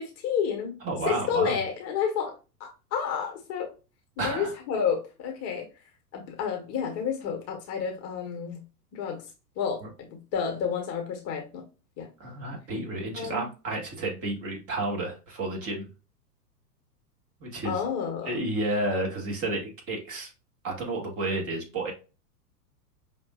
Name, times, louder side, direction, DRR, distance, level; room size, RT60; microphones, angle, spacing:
voice 1, 0.0-0.8 1.0-3.7 4.2-5.7 6.1-8.6 8.9-9.3 9.6-11.6 12.0-12.1 13.1-13.4 17.6-18.4, left 7 dB, 30° left, 3 dB, 1.0 m, -30 dB
voice 2, 0.8-1.6 4.2-4.5 12.2-15.9 17.4-17.8 18.2-20.3 20.6-21.9, right 2 dB, 30° right, 0 dB, 1.5 m, -31 dB
5.6 x 2.6 x 2.2 m, 0.31 s
figure-of-eight pair, 100°, 49 cm